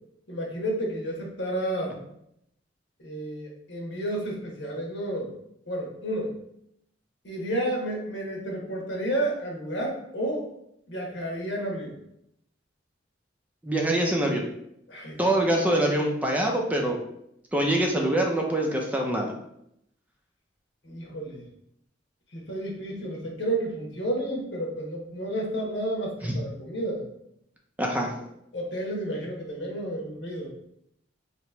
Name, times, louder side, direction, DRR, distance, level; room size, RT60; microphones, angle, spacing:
voice 1, 0.3-2.0 3.0-5.3 5.7-6.3 7.2-10.5 10.9-11.9 14.9-15.6 20.8-21.4 22.3-27.1 28.2-28.3 28.5-30.5, right 1 dB, 75° left, -1 dB, 1.2 m, -31 dB
voice 2, 13.6-14.5 15.2-17.0 17.5-19.3 26.2-26.4 27.8-28.1, right 1 dB, 10° right, 0 dB, 0.5 m, -24 dB
3.0 x 2.9 x 4.5 m, 0.76 s
head